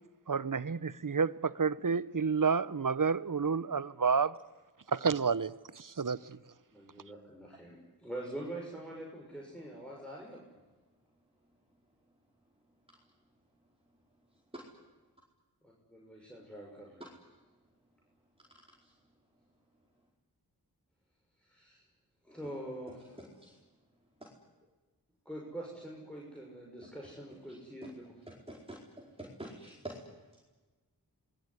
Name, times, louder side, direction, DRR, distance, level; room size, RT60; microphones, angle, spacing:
voice 1, 0.3-4.3 4.9-6.4, right 5 dB, 55° right, 0.9 m, -30 dB
voice 2, 6.7-10.4 15.6-17.1 21.4-21.8 22.2-23.2 25.2-28.2, right 1 dB, 5° left, 6.2 m, -45 dB
voice 3, 23.2-23.5 27.8-27.9 28.3-28.8 29.2-30.0, right 1 dB, 15° right, 4.7 m, -45 dB
27.0 x 21.0 x 9.8 m
wide cardioid pair, 50°, 39 cm